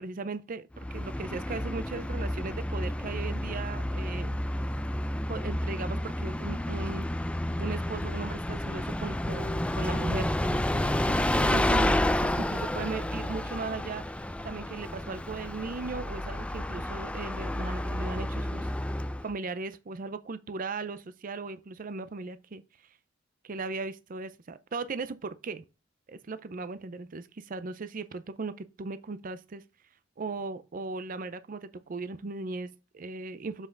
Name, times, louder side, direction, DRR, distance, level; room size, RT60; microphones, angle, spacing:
voice 1, 0.0-4.4 5.3-11.9 12.4-18.7 19.2-22.9 23.4-25.6 26.1-29.6 30.2-33.7, right 3 dB, 45° right, 0.5 m, -38 dB
Bus, 0.7-19.3, left 1 dB, 5° left, 0.4 m, -30 dB
7.3 x 5.4 x 3.8 m
head